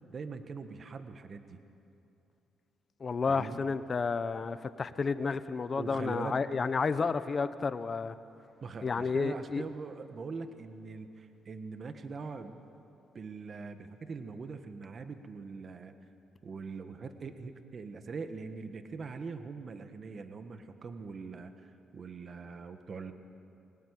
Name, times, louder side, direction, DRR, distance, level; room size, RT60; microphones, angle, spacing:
voice 1, 0.0-1.6 3.3-3.6 5.8-6.4 8.6-12.6 13.1-15.9 16.4-21.7 21.9-23.1, right 4 dB, 45° right, 8 dB, 1.6 m, -42 dB
voice 2, 3.0-8.1 8.8-9.6, left 4 dB, 40° left, 13 dB, 1.1 m, -31 dB
23.5 x 18.5 x 10.0 m, 2.7 s
cardioid pair, 90°, 0 cm